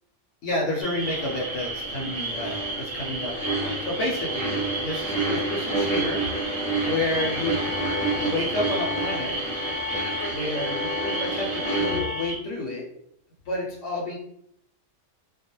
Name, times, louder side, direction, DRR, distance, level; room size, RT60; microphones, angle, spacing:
voice 1, 0.4-4.5 4.8-6.2 6.8-7.6 8.2-9.4 10.3-12.8 13.5-14.2, left 2 dB, 80° left, -2 dB, 1.0 m, -30 dB
sound 1, 0.8-12.4, right 3 dB, 70° right, 0.3 m, -33 dB
sound 2, 1.0-12.0, right 2 dB, 10° left, 0.4 m, -30 dB
sound 3, 7.1-12.3, left 6 dB, 60° left, 0.8 m, -35 dB
2.3 x 2.1 x 2.9 m, 0.72 s
omnidirectional pair, 1.3 m